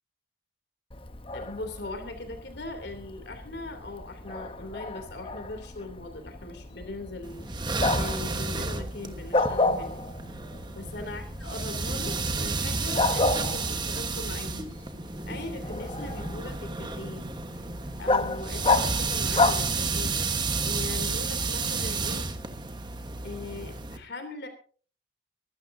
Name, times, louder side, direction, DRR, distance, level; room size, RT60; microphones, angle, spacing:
Bark, 0.9-20.3, left 3 dB, 30° left, 0.9 m, -32 dB
voice 1, 1.3-7.5 7.9-10.0 10.7-14.7 15.3-17.3 18.0-20.1 20.6-22.3 23.2-24.5, left 2 dB, 70° left, 6 dB, 2.9 m, -40 dB
sound 1, 7.2-24.0, right 3 dB, 25° right, 1.3 m, -31 dB
24.0 x 13.0 x 2.7 m, 0.42 s
head